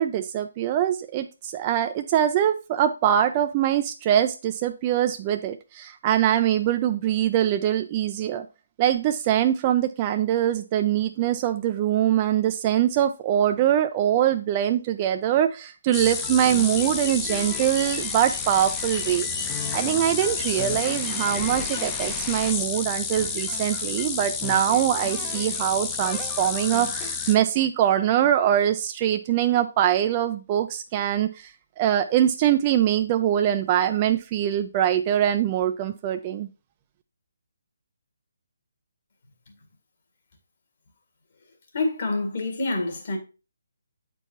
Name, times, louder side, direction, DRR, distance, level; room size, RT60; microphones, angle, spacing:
voice 1, 0.0-8.5 8.8-31.5 31.8-36.5, right 11 dB, 30° right, 0.4 m, -23 dB
sound 1, 15.9-27.3, left 5 dB, 15° left, 0.6 m, -30 dB
voice 2, 41.7-43.2, left 2 dB, 55° left, 1.9 m, -27 dB
7.8 x 4.6 x 2.9 m
figure-of-eight pair, 145°, 0 cm